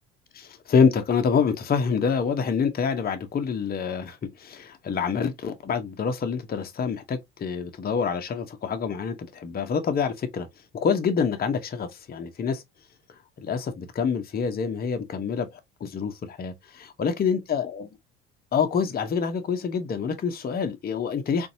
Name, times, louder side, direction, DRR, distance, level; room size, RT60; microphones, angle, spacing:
voice 1, 0.3-10.5 10.7-12.6 13.4-17.9 18.5-21.5, left 6 dB, 30° left, 0.8 m, -26 dB
4.0 x 2.7 x 2.5 m
hypercardioid pair, 60°, 31 cm